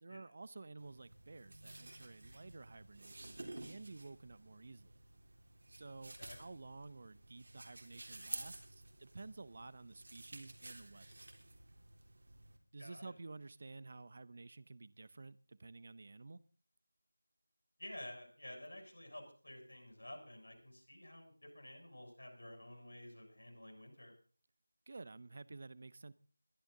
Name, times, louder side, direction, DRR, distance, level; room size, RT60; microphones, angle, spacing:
voice 1, 0.0-4.9 5.7-11.2 12.7-16.4 24.9-26.1, right 3 dB, 40° right, 0.8 m, -52 dB
sound 1, 0.8-12.6, right 2 dB, 55° right, 3.4 m, -52 dB
voice 2, 12.8-13.1 17.8-24.1, left 1 dB, 70° left, 6.9 m, -52 dB
21.5 x 11.5 x 3.8 m
figure-of-eight pair, 165°, 0 cm